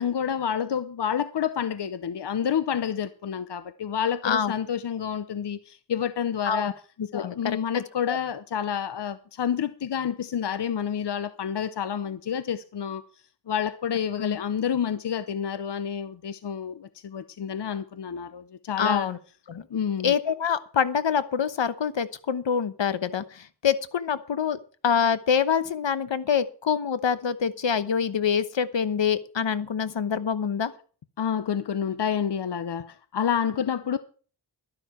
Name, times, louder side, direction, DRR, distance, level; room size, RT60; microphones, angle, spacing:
voice 1, 0.0-6.8 7.1-13.0 13.5-19.1 19.7-20.1 31.2-34.0, left 8 dB, 65° left, 0.8 m, -29 dB
voice 2, 7.0-8.2 14.2-14.4 18.8-19.2 19.5-19.6 20.0-24.6 24.8-30.7, left 7 dB, 80° left, 1.1 m, -26 dB
12.5 x 11.5 x 4.4 m
wide cardioid pair, 65°, 44 cm